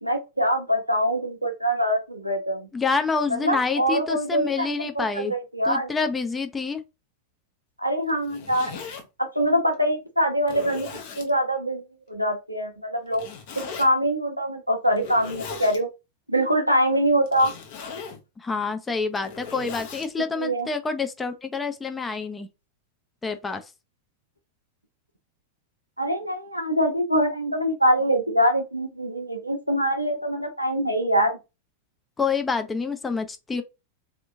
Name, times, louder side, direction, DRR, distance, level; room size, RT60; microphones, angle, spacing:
voice 1, 0.0-2.7 3.3-5.9 7.8-8.8 9.2-10.9 11.2-13.2 13.8-15.9 16.3-17.5 20.3-20.7 26.0-31.3, equal, 90° right, 0.7 m, -24 dB
voice 2, 2.7-5.3 5.7-6.8 18.4-22.5 23.2-23.6 32.2-33.6, left 4 dB, 15° left, 0.5 m, -27 dB
Zipper (clothing), 8.1-9.0 9.7-9.8 10.4-11.3 13.1-13.9 14.9-15.8 17.3-18.2 19.0-20.1, left 6 dB, 50° left, 0.9 m, -38 dB
3.4 x 2.9 x 2.5 m
figure-of-eight pair, 90°, 0 cm